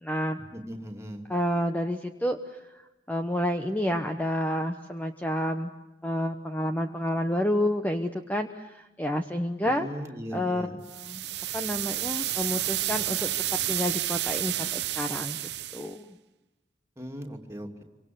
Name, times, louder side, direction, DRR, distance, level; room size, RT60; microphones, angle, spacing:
voice 1, 0.0-0.4 1.3-2.8 3.1-5.7 6.0-9.9 10.3-11.2 11.5-13.3 13.7-15.4 15.7-16.2, equal, 10° left, 6 dB, 1.0 m, -29 dB
voice 2, 0.5-1.3 9.6-10.8 17.0-17.8, equal, 15° right, 2 dB, 2.9 m, -38 dB
sound 1, 10.9-15.9, right 14 dB, 65° right, 0.9 m, -30 dB
27.0 x 25.0 x 7.9 m, 1.0 s
head